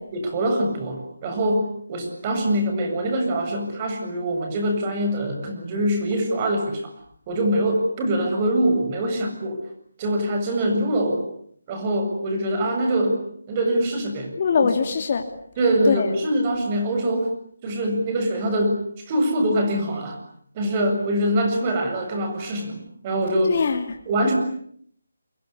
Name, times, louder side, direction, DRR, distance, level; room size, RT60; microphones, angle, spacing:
voice 1, 0.1-6.9 7.3-9.6 10.0-11.2 11.7-13.2 13.5-14.3 15.6-17.3 17.6-20.2 20.5-23.6 24.1-24.3, right 1 dB, 25° right, 4 dB, 7.6 m, -23 dB
voice 2, 14.4-15.3 15.9-16.1 23.5-23.9, left 5 dB, 40° left, 4 dB, 2.9 m, -22 dB
30.0 x 23.5 x 8.5 m, 0.64 s
figure-of-eight pair, 160°, 0 cm